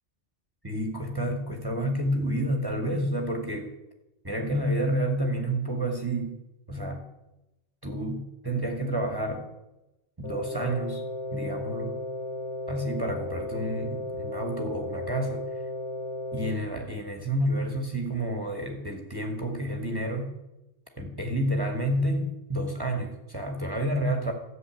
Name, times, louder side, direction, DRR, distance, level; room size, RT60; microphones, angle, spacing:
voice 1, 0.6-3.7 4.2-6.4 6.7-7.0 7.8-9.4 10.2-11.0 11.3-12.0 12.7-15.4 16.3-20.3 21.0-24.3, right 1 dB, 20° right, 2 dB, 2.0 m, -29 dB
sound 1, 10.2-16.5, left 2 dB, 80° left, 2.7 m, -35 dB
14.0 x 7.5 x 9.2 m, 0.94 s
omnidirectional pair, 1.3 m